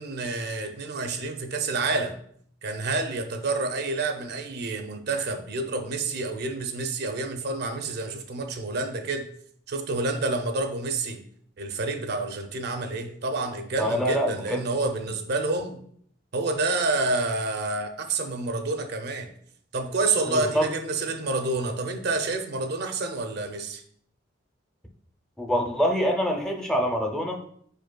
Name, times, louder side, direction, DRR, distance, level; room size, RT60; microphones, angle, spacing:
voice 1, 0.0-2.2 2.6-9.3 9.7-11.2 11.6-15.8 16.3-19.3 19.7-23.8, right 3 dB, 55° right, 6 dB, 0.5 m, -28 dB
voice 2, 13.8-14.6 20.3-20.7 25.4-27.4, equal, 5° left, 1 dB, 0.5 m, -25 dB
5.2 x 4.4 x 2.2 m, 0.63 s
head